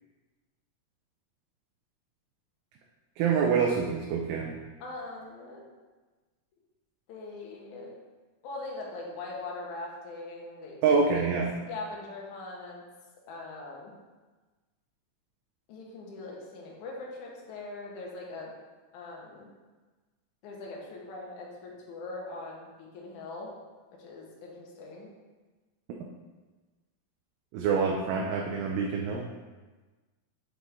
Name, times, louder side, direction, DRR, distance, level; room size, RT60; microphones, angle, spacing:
voice 1, 3.2-4.6 10.8-11.5 27.5-29.3, right 5 dB, 80° right, 0 dB, 2.3 m, -26 dB
voice 2, 4.8-5.6 7.1-7.9 8.4-11.3 11.7-12.8 13.3-13.9 15.7-18.5 18.9-19.5 20.4-23.6 24.0-25.1, left 3 dB, 65° left, -2 dB, 2.2 m, -41 dB
7.6 x 4.2 x 3.5 m, 1.3 s
omnidirectional pair, 4.3 m